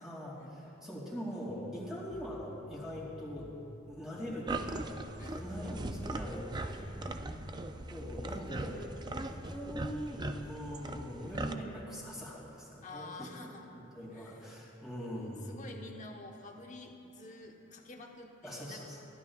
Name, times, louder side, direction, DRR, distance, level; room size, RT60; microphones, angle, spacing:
voice 1, 0.0-3.5 3.9-5.0 5.3-6.7 7.9-8.9 9.3-13.3 13.7-15.6 18.4-19.0, equal, 5° right, -7 dB, 2.5 m, -42 dB
sound 1, 1.5-11.5, equal, 15° left, 0.7 m, -49 dB
sound 2, 4.5-11.5, right 2 dB, 20° right, 0.4 m, -40 dB
voice 2, 5.2-5.7 6.6-7.7 12.8-13.7 14.1-14.4 15.1-18.8, left 2 dB, 35° left, 2 dB, 1.1 m, -49 dB
22.5 x 11.5 x 2.4 m, 2.7 s
head